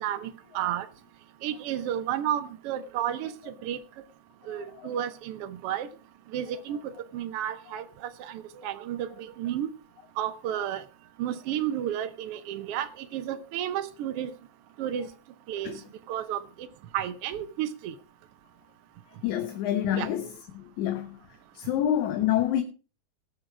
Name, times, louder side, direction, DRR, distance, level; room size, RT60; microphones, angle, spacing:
voice 1, 0.0-0.9 1.4-3.8 4.5-5.9 6.3-9.7 10.2-10.8 11.2-14.3 14.8-15.1 15.5-15.7 16.1-16.7 16.9-17.9 19.9-20.1, right 10 dB, 80° right, 1.3 m, -32 dB
voice 2, 19.2-20.3 20.8-21.2 21.5-22.6, left 11 dB, 75° left, 2.3 m, -27 dB
19.5 x 6.6 x 4.7 m
omnidirectional pair, 3.5 m